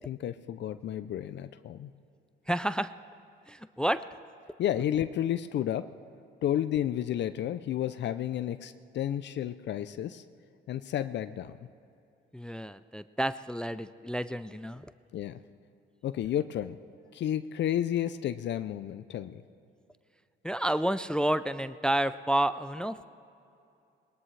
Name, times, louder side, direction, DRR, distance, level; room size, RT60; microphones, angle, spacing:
voice 1, 0.0-1.9 4.6-5.9 6.4-10.2 10.7-11.6 15.1-15.4 16.0-16.8 17.1-19.4, left 11 dB, 65° left, 11 dB, 0.5 m, -31 dB
voice 2, 2.5-2.9 3.5-4.0 12.3-14.9 20.4-23.0, right 1 dB, 5° left, 13 dB, 0.3 m, -30 dB
21.0 x 19.0 x 3.3 m, 2.7 s
cardioid pair, 90°, 20 cm